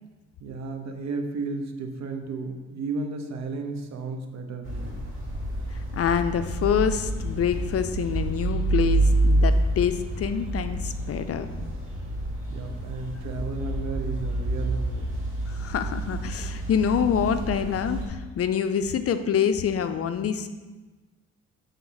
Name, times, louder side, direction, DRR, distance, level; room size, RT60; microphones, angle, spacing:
voice 1, 0.4-5.0 12.5-15.1, right 3 dB, 60° right, 5 dB, 0.9 m, -33 dB
sound 1, 4.6-18.1, right 2 dB, 40° right, 2.3 m, -28 dB
voice 2, 5.7-11.5 15.5-20.5, left 7 dB, 50° left, 9 dB, 0.5 m, -26 dB
7.4 x 3.5 x 5.7 m, 1.2 s
cardioid pair, 90°, 30 cm